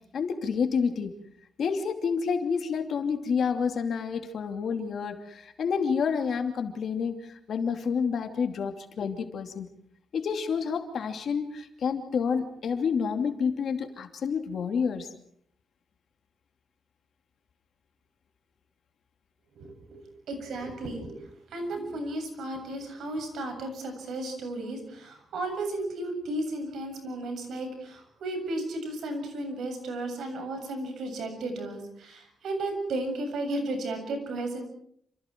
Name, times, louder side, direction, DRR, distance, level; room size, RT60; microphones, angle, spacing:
voice 1, 0.1-1.1 1.6-9.7 10.1-15.1, left 6 dB, 55° left, 6 dB, 2.7 m, -29 dB
voice 2, 19.6-20.0 20.3-21.2 21.5-34.6, right 2 dB, 75° right, 5 dB, 7.4 m, -34 dB
28.5 x 27.5 x 4.6 m, 0.67 s
wide cardioid pair, 170°, 0 cm